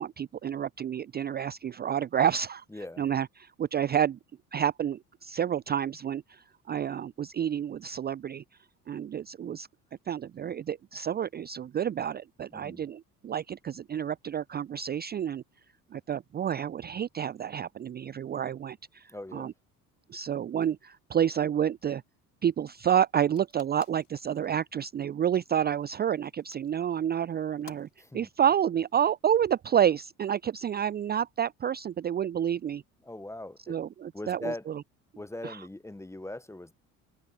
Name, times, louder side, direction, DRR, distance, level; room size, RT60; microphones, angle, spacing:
voice 1, 0.0-2.6 3.0-4.2 4.5-8.4 8.9-9.7 10.1-15.4 15.9-19.5 20.1-22.0 22.4-27.9 28.1-32.8 33.7-34.5 35.4-35.6, right 9 dB, 20° right, 0.6 m, -29 dB
voice 2, 2.7-3.0 12.5-12.8 19.1-19.5 28.0-28.3 33.0-33.8 34.1-34.7 35.2-36.7, left 1 dB, 5° left, 1.0 m, -40 dB
sound 1, 23.4-29.5, left 7 dB, 80° left, 4.1 m, -57 dB
figure-of-eight pair, 55°, 45 cm